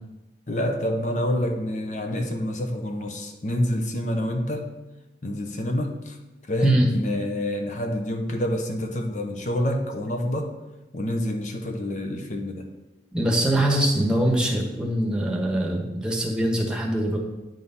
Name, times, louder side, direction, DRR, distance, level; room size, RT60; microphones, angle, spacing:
voice 1, 0.5-4.7 5.2-6.2 6.5-10.5 10.9-12.6, left 1 dB, 45° left, 4 dB, 0.8 m, -27 dB
voice 2, 13.1-17.2, right 1 dB, 5° right, 0 dB, 1.1 m, -23 dB
9.3 x 3.8 x 5.5 m, 1.0 s
head